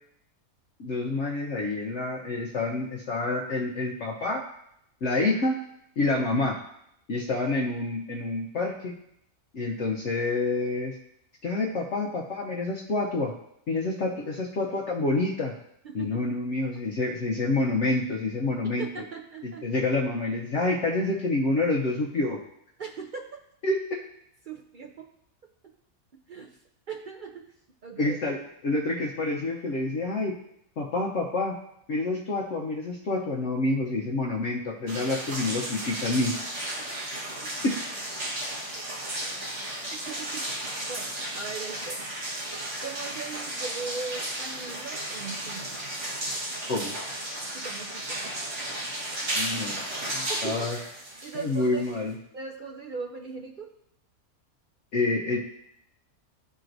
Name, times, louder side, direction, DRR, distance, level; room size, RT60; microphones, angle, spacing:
voice 1, 0.8-4.4 5.0-5.6 6.0-6.6 7.1-8.9 9.5-10.9 11.4-13.3 13.7-15.5 15.9-18.9 19.4-22.4 23.6-23.8 28.0-28.4 28.6-30.3 30.8-31.6 31.9-36.3 37.6-37.7 46.7-46.9 49.3-49.8 50.1-50.8 51.3-52.1 54.9-55.4, left 2 dB, 60° left, -2 dB, 1.0 m, -28 dB
voice 2, 15.8-16.2 18.8-19.9 22.8-23.4 24.4-25.1 25.6-25.8 26.1-26.6 26.9-27.5 27.8-28.2 36.8-37.7 38.7-38.8 39.9-42.0 42.8-45.8 47.5-48.2 50.3-50.7 51.2-51.8 52.3-53.7, right 5 dB, 75° right, 2 dB, 0.4 m, -39 dB
sound 1, 34.9-52.1, right 1 dB, 55° right, 1.7 m, -34 dB
12.5 x 4.5 x 2.6 m, 0.76 s
omnidirectional pair, 1.5 m